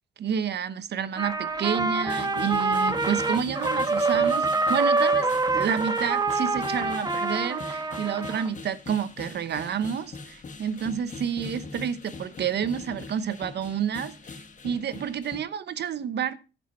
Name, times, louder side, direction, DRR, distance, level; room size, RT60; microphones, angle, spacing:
voice 1, 0.2-5.3 5.5-16.4, right 8 dB, 60° right, 1.0 m, -29 dB
Trumpet, 1.2-8.5, right 3 dB, 20° right, 1.3 m, -25 dB
sound 1, 1.3-15.4, left 4 dB, 40° left, 1.5 m, -42 dB
14.0 x 6.3 x 4.4 m
cardioid pair, 90°, 20 cm